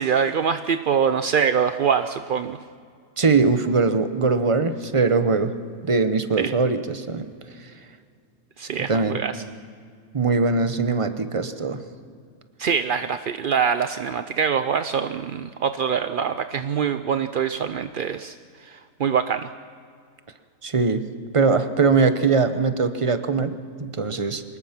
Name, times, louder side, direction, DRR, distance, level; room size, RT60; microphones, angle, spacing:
voice 1, 0.0-2.6 6.4-6.5 8.6-9.4 12.6-18.3 18.6-19.5, right 7 dB, 65° right, 10 dB, 0.5 m, -24 dB
voice 2, 3.2-5.5 5.8-7.3 8.9-9.2 10.1-11.8 20.6-21.0 21.3-24.4, right 4 dB, 25° right, 10 dB, 0.8 m, -21 dB
24.0 x 20.5 x 5.9 m, 2.2 s
omnidirectional pair, 1.6 m